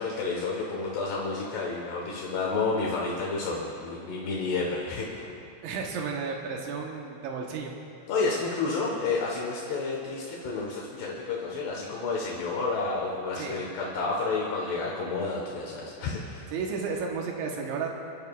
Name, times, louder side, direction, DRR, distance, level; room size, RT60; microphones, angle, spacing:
voice 1, 0.0-5.3 8.1-16.5, left 3 dB, 70° left, -3 dB, 3.3 m, -30 dB
voice 2, 5.6-7.7 13.4-13.6 16.5-17.9, right 5 dB, 90° right, 0 dB, 3.5 m, -33 dB
29.0 x 13.0 x 2.5 m, 3.0 s
omnidirectional pair, 5.1 m